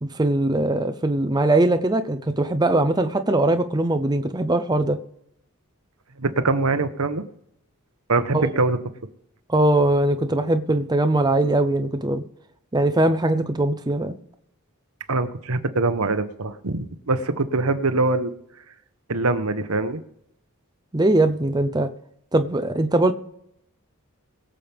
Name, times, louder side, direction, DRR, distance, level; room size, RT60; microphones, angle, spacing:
voice 1, 0.0-5.0 8.3-8.5 9.5-12.2 12.7-14.1 20.9-21.9 22.3-23.1, right 2 dB, 20° right, 8 dB, 0.7 m, -21 dB
voice 2, 6.2-7.2 8.1-8.8 15.1-18.3 19.1-20.0, right 3 dB, 75° right, 9 dB, 1.2 m, -23 dB
22.0 x 7.5 x 3.5 m, 0.75 s
head